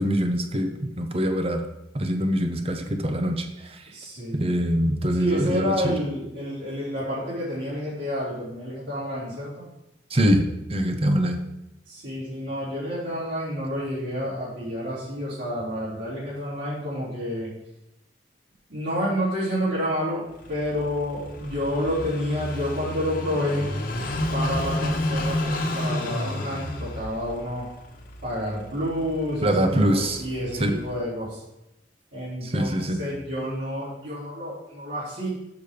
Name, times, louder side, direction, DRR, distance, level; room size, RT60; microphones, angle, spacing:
voice 1, 0.0-1.6 1.9-3.8 4.3-5.9 10.1-11.4 29.4-30.2 30.6-30.8 32.4-33.0, equal, 35° right, 5 dB, 0.8 m, -24 dB
voice 2, 3.9-4.5 5.2-9.7 11.9-17.5 18.7-20.2 20.5-23.7 24.3-27.7 28.2-31.4 32.1-35.3, equal, 90° right, -9 dB, 3.5 m, -29 dB
Car passing by / Idling, 20.3-31.0, left 1 dB, 50° left, 1.2 m, -31 dB
6.9 x 6.2 x 5.1 m, 0.90 s
head